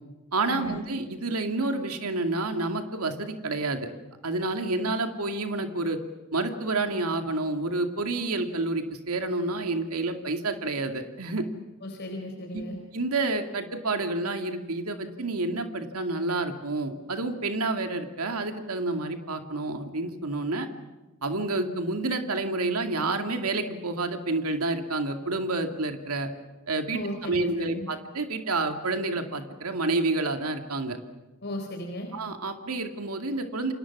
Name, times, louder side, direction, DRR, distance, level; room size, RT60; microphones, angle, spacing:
voice 1, 0.3-3.9 4.2-6.0 6.3-11.4 12.5-12.6 12.9-20.7 21.2-26.3 26.7-31.0 32.1-33.7, right 2 dB, 80° right, 6 dB, 2.4 m, -29 dB
voice 2, 11.8-12.8 26.9-27.9 31.4-32.1, left 1 dB, 50° left, 2 dB, 4.2 m, -35 dB
30.0 x 26.0 x 6.1 m, 1.1 s
head